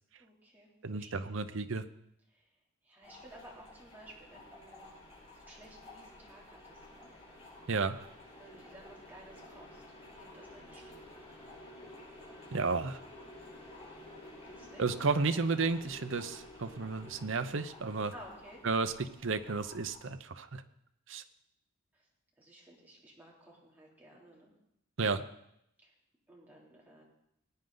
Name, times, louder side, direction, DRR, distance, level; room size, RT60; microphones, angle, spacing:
voice 1, 0.2-1.5 2.3-2.4 2.8-5.0 5.4-7.1 8.4-9.8 10.1-11.1 14.4-14.9 18.1-18.6 21.9-22.1 22.4-24.5 25.8-25.9 26.3-27.0, right 1 dB, 10° right, -4 dB, 3.1 m, -55 dB
voice 2, 0.8-1.8 7.7-8.0 12.5-13.0 14.8-18.1 18.6-20.6 21.1-21.2 25.0-25.2, right 4 dB, 65° right, 10 dB, 0.7 m, -32 dB
sound 1, 3.0-20.1, left 1 dB, 30° left, 5.5 m, -52 dB
19.5 x 9.0 x 3.9 m, 0.78 s
head